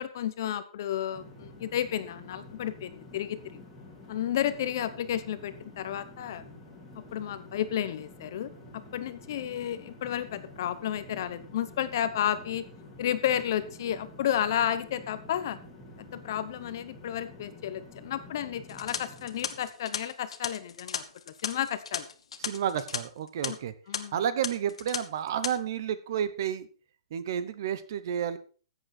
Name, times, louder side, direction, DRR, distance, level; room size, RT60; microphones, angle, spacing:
voice 1, 0.0-3.6 4.1-6.4 6.9-12.6 13.0-15.6 16.0-22.1 23.4-23.6 23.9-24.2, left 10 dB, 40° left, 13 dB, 0.9 m, -32 dB
sound 1, 1.1-19.7, left 2 dB, 5° left, 2.4 m, -49 dB
sound 2, 18.7-23.0 23.3-23.5 23.9-24.0 24.4-25.0 25.3-25.5, left 6 dB, 85° left, 1.4 m, -35 dB
voice 2, 22.5-23.7 24.1-26.7 27.1-28.4, right 9 dB, 40° right, 14 dB, 0.9 m, -31 dB
14.0 x 8.0 x 4.4 m, 0.38 s
hypercardioid pair, 175°, 3 cm